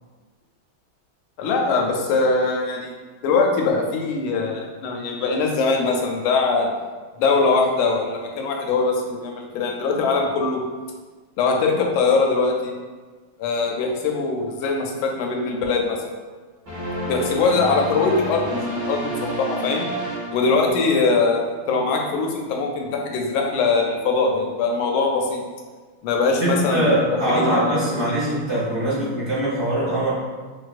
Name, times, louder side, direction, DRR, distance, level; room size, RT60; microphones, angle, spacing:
voice 1, 1.4-3.0 3.2-6.7 7.2-10.6 11.4-12.7 13.4-16.0 17.1-19.9 20.3-25.4 26.0-26.9 27.3-27.6 27.9-28.1, left 4 dB, 80° left, 1 dB, 1.4 m, -22 dB
sound 1, 16.7-21.1, right 1 dB, 35° right, 1.1 m, -30 dB
voice 2, 26.4-30.1, right 1 dB, 65° right, -10 dB, 0.7 m, -22 dB
4.6 x 2.2 x 2.4 m, 1.4 s
omnidirectional pair, 2.2 m